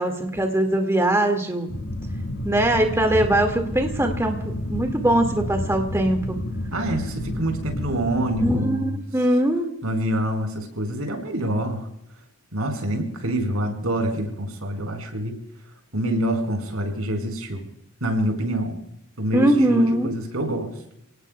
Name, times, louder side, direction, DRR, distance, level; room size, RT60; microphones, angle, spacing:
voice 1, 0.0-1.7 2.4-6.4 8.4-9.7 19.3-20.1, right 1 dB, 15° right, 3 dB, 2.2 m, -21 dB
sound 1, 1.7-8.6, left 1 dB, 80° left, 2.4 m, -30 dB
voice 2, 6.7-8.9 9.8-11.9 12.5-15.4 15.9-17.6 18.0-18.8 19.2-20.7, right 1 dB, 85° right, 5 dB, 5.0 m, -26 dB
30.0 x 19.0 x 2.4 m, 0.78 s
head